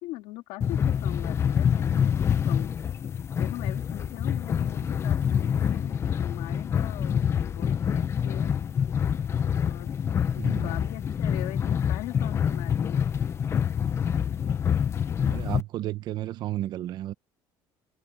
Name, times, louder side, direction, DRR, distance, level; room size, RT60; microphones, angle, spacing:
voice 1, 0.0-2.1 2.4-2.7 3.4-8.5 9.6-9.9 10.3-13.1, left 18 dB, 80° left, 2.4 m, -40 dB
sound 1, 0.6-15.6, left 8 dB, 30° left, 0.8 m, -26 dB
voice 2, 10.4-10.8 15.2-17.1, right 14 dB, 50° right, 0.9 m, -33 dB
cardioid pair, 155°, 9 cm